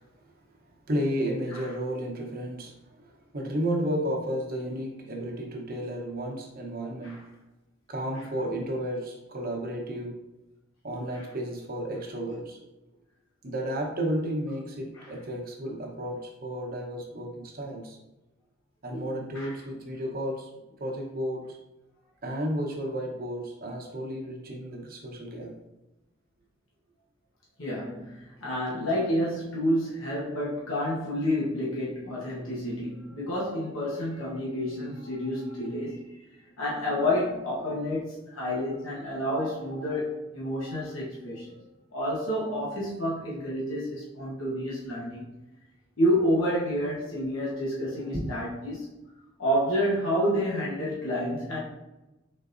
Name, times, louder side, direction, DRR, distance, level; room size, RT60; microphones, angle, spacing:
voice 1, 0.9-7.2 7.9-10.2 10.8-12.6 13.4-18.0 18.8-20.5 20.8-21.6 22.2-25.5 48.1-48.3, equal, 50° right, 0 dB, 0.9 m, -32 dB
voice 2, 27.6-36.2 36.6-41.6 41.9-45.3 46.0-48.9 49.4-51.6, equal, 75° left, -6 dB, 1.1 m, -29 dB
3.9 x 3.8 x 2.6 m, 0.99 s
head